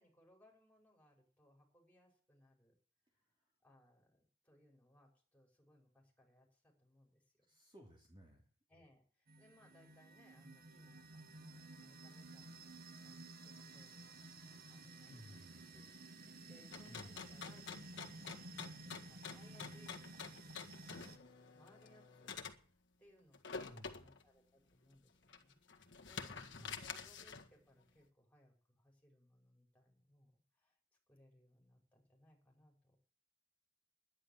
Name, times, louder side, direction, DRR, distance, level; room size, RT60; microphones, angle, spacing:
voice 1, 0.0-2.7 3.6-7.2 8.7-15.4 15.7-15.9 16.2-22.3 22.6-23.4 23.7-30.8 31.1-33.0, equal, 5° left, 0 dB, 5.4 m, -68 dB
voice 2, 7.5-8.4 15.1-15.9 16.9-17.2 23.6-24.1 26.6-26.9, equal, 25° right, 0 dB, 3.1 m, -58 dB
sound 1, 9.3-21.2, right 2 dB, 50° right, 1.6 m, -54 dB
sound 2, 16.7-22.6 23.3-24.2 24.7-24.8 25.3-27.5, left 5 dB, 65° left, 1.8 m, -48 dB
11.5 x 10.5 x 7.4 m, 0.43 s
head